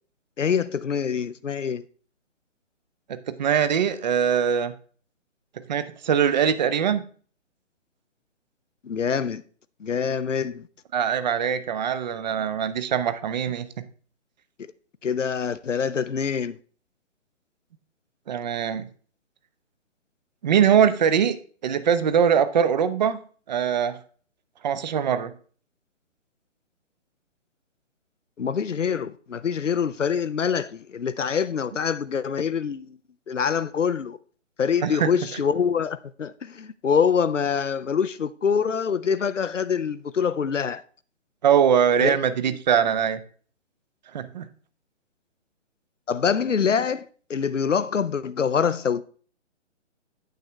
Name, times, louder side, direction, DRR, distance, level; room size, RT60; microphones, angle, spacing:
voice 1, 0.4-1.8 8.8-9.4 9.8-10.7 15.0-16.6 28.4-33.0 33.3-34.2 34.6-40.8 42.0-42.2 42.5-42.6 46.1-49.0, left 6 dB, 90° left, 0.6 m, -25 dB
voice 2, 3.1-4.7 5.7-7.0 10.9-13.7 18.3-18.9 20.4-21.4 21.6-23.2 23.5-24.0 24.6-25.3 34.8-35.1 41.4-43.2 44.1-44.5, right 8 dB, 35° right, 0.7 m, -22 dB
9.1 x 7.6 x 3.3 m
figure-of-eight pair, 135°, 36 cm